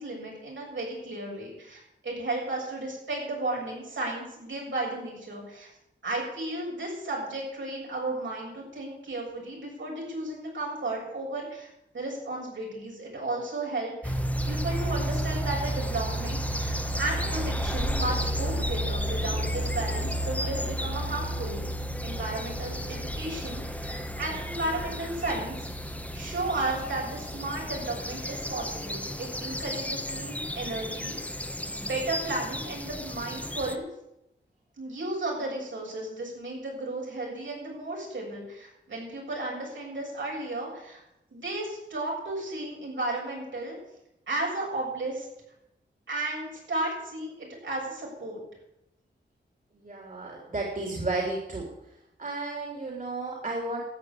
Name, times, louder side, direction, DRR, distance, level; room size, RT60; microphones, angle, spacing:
voice 1, 0.0-5.7 6.0-21.6 22.0-25.6 26.1-31.2 31.7-33.8 34.8-41.0 41.3-43.8 44.3-45.3 46.1-48.4, right 2 dB, 75° right, -3 dB, 7.3 m, -34 dB
Dawn chorus Ashdown Forrest Distact Cuckoo, 14.0-33.8, equal, 5° left, 1.2 m, -32 dB
voice 2, 49.8-51.7 52.2-53.8, right 2 dB, 45° right, -2 dB, 3.5 m, -32 dB
13.0 x 9.0 x 8.5 m, 0.85 s
wide cardioid pair, 100°, 19 cm